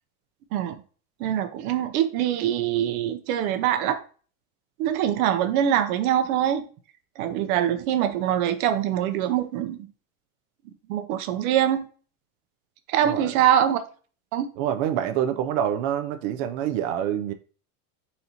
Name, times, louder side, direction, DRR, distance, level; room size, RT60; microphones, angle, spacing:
voice 1, 1.2-4.0 4.8-6.7 7.2-9.9 10.9-11.9 12.9-13.8 14.3-14.5, right 10 dB, 75° right, 0.8 m, -23 dB
voice 2, 13.0-13.4 14.6-17.3, right 10 dB, 50° right, 0.5 m, -26 dB
4.2 x 2.7 x 4.3 m
supercardioid pair, 145°, 43 cm